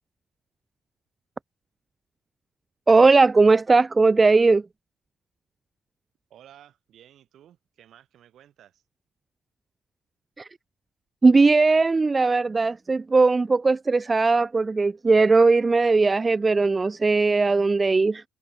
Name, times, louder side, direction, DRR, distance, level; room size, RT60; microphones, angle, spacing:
voice 1, 2.9-4.6 10.4-10.5 11.2-18.2, right 3 dB, 25° right, 0.4 m, -19 dB
voice 2, 6.3-8.8, right 11 dB, 70° right, 6.6 m, -53 dB
cardioid pair, 90°, 0 cm